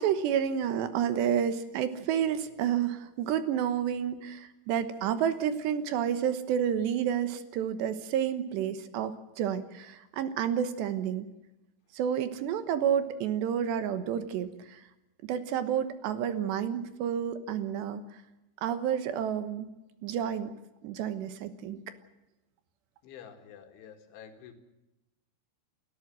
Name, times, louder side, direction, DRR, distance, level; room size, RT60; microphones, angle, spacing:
voice 1, 0.0-11.3 11.9-14.8 15.3-18.0 18.6-19.7 20.0-20.5 20.8-21.8, right 9 dB, 75° right, 10 dB, 3.2 m, -30 dB
voice 2, 23.0-24.5, left 8 dB, 85° left, 6 dB, 4.5 m, -49 dB
29.0 x 13.5 x 7.7 m, 0.96 s
omnidirectional pair, 5.4 m